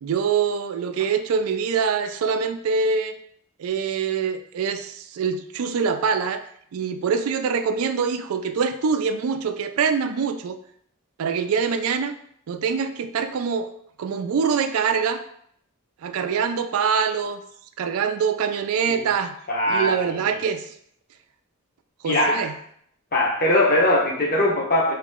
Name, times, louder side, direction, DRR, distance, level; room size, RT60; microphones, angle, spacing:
voice 1, 0.0-3.2 3.6-6.4 6.7-10.6 11.2-12.1 12.5-13.7 14.0-15.2 16.0-17.4 17.8-19.4 19.7-20.6 22.0-22.5, right 6 dB, 85° right, 8 dB, 0.4 m, -24 dB
voice 2, 19.5-20.0 20.2-20.4 22.0-22.5 23.1-24.9, left 1 dB, 40° left, -2 dB, 0.8 m, -21 dB
3.0 x 2.9 x 3.6 m, 0.67 s
head